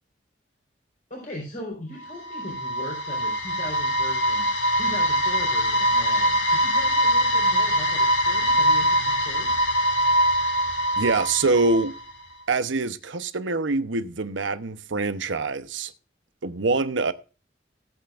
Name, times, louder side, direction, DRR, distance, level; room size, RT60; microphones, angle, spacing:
voice 1, 1.1-4.5 4.7-9.6, left 1 dB, 50° left, 4.1 m, -39 dB
sound 1, 2.0-12.1, equal, 80° left, 2.2 m, -23 dB
voice 2, 11.0-11.9 12.5-15.9 16.4-17.1, right 3 dB, 85° right, 0.9 m, -24 dB
18.0 x 8.3 x 2.5 m
head